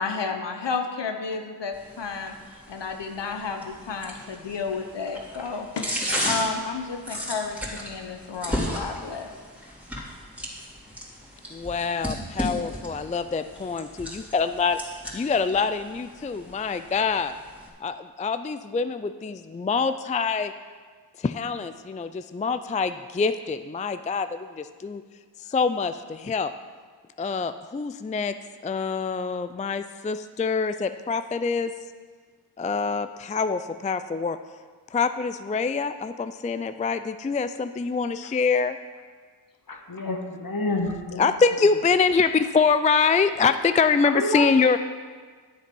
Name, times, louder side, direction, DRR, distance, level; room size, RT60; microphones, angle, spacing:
voice 1, 0.0-2.3 2.7-5.9 6.2-9.3, left 4 dB, 75° left, 4 dB, 0.9 m, -31 dB
sound 1, 1.7-17.7, equal, 5° right, 2.8 m, -35 dB
voice 2, 11.5-17.3 17.8-20.5 21.2-25.0 25.5-26.5 27.2-28.3 28.6-31.7 32.6-34.4 34.9-38.8 41.2-44.8, left 5 dB, 20° left, 11 dB, 0.3 m, -25 dB
voice 3, 39.7-41.3 44.1-44.5, left 2 dB, 55° left, 2 dB, 1.5 m, -29 dB
10.5 x 7.3 x 5.4 m, 1.5 s
cardioid pair, 50°, 42 cm